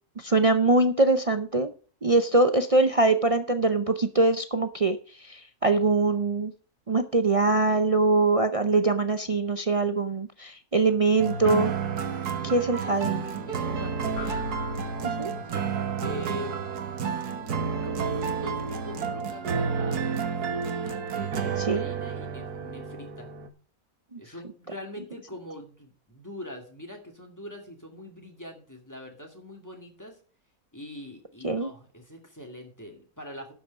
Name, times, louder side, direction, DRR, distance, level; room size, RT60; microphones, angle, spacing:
voice 1, 0.2-1.7 2.0-6.5 6.9-11.7 12.4-13.1 15.0-15.3 21.7-21.8 24.1-24.2 31.4-31.7, right 3 dB, 60° right, 0.3 m, -23 dB
sound 1, 11.2-23.5, right 6 dB, 85° right, 1.8 m, -30 dB
voice 2, 12.4-14.5 15.9-16.6 17.8-23.3 24.2-30.2 30.7-33.5, left 1 dB, 10° left, 2.3 m, -43 dB
sound 2, 14.2-15.7, left 4 dB, 40° left, 1.1 m, -42 dB
12.0 x 6.3 x 5.4 m
omnidirectional pair, 1.6 m